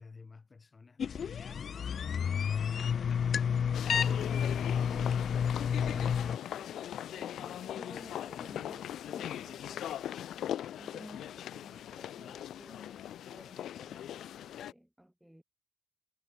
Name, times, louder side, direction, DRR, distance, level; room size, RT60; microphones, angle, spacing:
voice 1, 0.0-2.9 3.8-6.2, left 4 dB, 30° left, 7.5 m, -54 dB
sound 1, 1.0-6.4, left 7 dB, 55° left, 0.7 m, -30 dB
sound 2, 3.7-14.7, left 11 dB, 70° left, 3.7 m, -40 dB
voice 2, 4.9-5.2 5.6-10.2 10.8-15.4, equal, 5° right, 5.7 m, -54 dB
cardioid pair, 90°, 0 cm